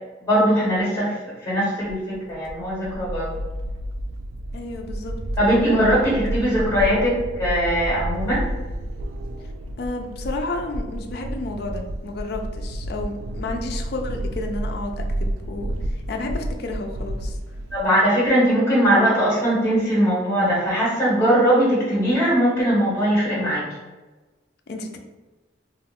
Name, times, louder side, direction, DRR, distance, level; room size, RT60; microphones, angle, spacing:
voice 1, 0.2-1.1 1.4-3.4 5.4-8.4 17.7-23.7, equal, 15° left, -6 dB, 1.1 m, -20 dB
sound 1, 1.9-17.9, right 1 dB, 85° right, 0.3 m, -31 dB
voice 2, 4.5-5.1 9.8-17.4 24.7-25.0, left 2 dB, 50° left, 4 dB, 0.3 m, -31 dB
2.4 x 2.3 x 3.4 m, 1.2 s
head